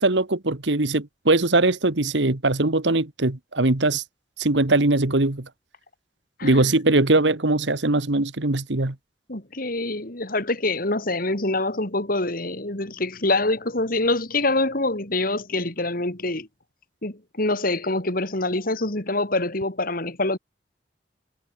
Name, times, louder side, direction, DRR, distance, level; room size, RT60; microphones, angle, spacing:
voice 1, 0.0-4.0 4.4-5.5 6.4-8.9, right 2 dB, 75° right, 1.7 m, -21 dB
voice 2, 9.3-16.5 17.0-20.4, left 2 dB, 50° left, 3.4 m, -25 dB
head